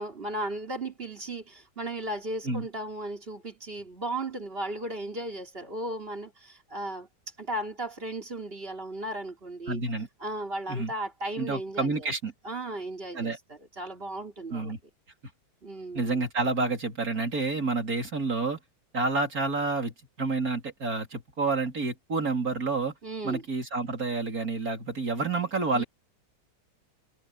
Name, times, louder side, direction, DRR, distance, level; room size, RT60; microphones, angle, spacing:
voice 1, 0.0-7.1 7.4-9.8 10.2-12.1 12.4-14.7 15.6-16.2 23.0-23.4 25.7-25.8, right 1 dB, 30° right, 3.4 m, -36 dB
voice 2, 9.7-10.1 10.7-10.9 11.4-12.3 13.1-13.4 14.5-14.8 15.9-18.6 18.9-23.0 23.2-25.8, right 3 dB, 45° right, 3.9 m, -29 dB
omnidirectional pair, 2.2 m